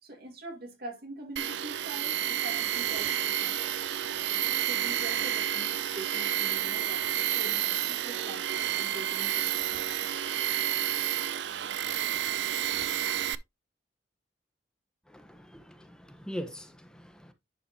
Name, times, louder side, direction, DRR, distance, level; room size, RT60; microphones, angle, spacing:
voice 1, 0.0-3.8 4.3-9.8, right 2 dB, 60° right, 2.3 m, -44 dB
Tools, 1.4-13.4, right 11 dB, 85° right, 0.5 m, -30 dB
voice 2, 15.1-17.3, equal, 5° left, 1.1 m, -42 dB
10.5 x 5.0 x 2.9 m
head